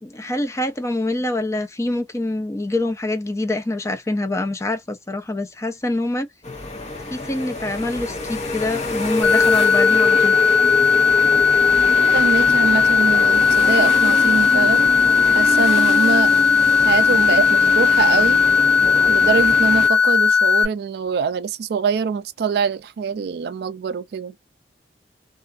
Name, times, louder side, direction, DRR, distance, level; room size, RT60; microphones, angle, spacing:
voice 1, 0.0-6.3 7.1-10.4, left 2 dB, 15° left, 0.5 m, -25 dB
sound 1, 6.4-19.9, left 2 dB, 40° left, 0.9 m, -26 dB
sound 2, 9.2-20.6, left 6 dB, 90° left, 0.6 m, -16 dB
voice 2, 12.1-14.9 15.3-16.3 16.8-18.4 19.1-24.3, right 5 dB, 60° right, 0.3 m, -24 dB
2.5 x 2.4 x 2.4 m
head